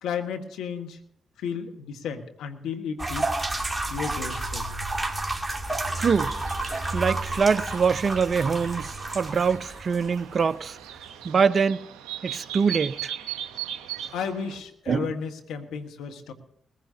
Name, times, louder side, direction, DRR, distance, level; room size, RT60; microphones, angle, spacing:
voice 1, 0.0-1.0 1.4-3.5 3.9-4.6 14.1-16.3, left 6 dB, 80° left, 1.4 m, -33 dB
sound 1, 3.0-10.6, right 2 dB, 20° right, 2.6 m, -31 dB
sound 2, 5.9-14.6, right 11 dB, 85° right, 0.8 m, -39 dB
voice 2, 6.0-6.3 6.9-10.8 11.2-11.8 12.2-13.1 14.9-15.1, right 5 dB, 55° right, 0.6 m, -24 dB
20.5 x 15.5 x 2.7 m
hypercardioid pair, 40°, 0 cm